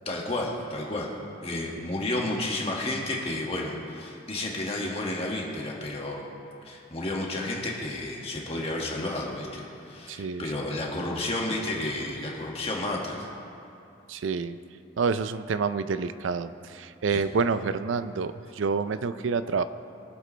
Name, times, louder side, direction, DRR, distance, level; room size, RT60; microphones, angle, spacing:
voice 1, 0.1-1.1 1.4-6.2 6.6-13.3 17.1-17.3, left 2 dB, 30° left, -2 dB, 1.8 m, -31 dB
voice 2, 10.1-10.5 14.1-14.6 15.0-19.6, right 5 dB, 80° right, 12 dB, 0.4 m, -28 dB
23.0 x 8.2 x 3.3 m, 2.6 s
head